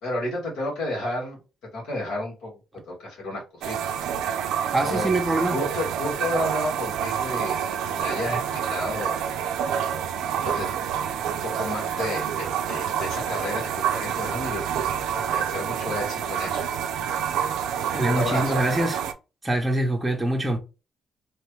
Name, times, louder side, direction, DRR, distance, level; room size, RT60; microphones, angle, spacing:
voice 1, 0.0-1.4 1.7-2.6 2.8-3.8 4.8-5.1 5.5-9.3 10.4-10.7 11.1-14.6 15.1-16.6 17.9-18.6, left 1 dB, 90° left, 1.7 m, -31 dB
sound 1, 3.6-19.1, right 8 dB, 90° right, 0.3 m, -28 dB
voice 2, 4.7-5.6 17.9-19.0 19.4-20.6, right 1 dB, 10° right, 0.7 m, -24 dB
3.0 x 2.2 x 3.2 m
cardioid pair, 90°, 0 cm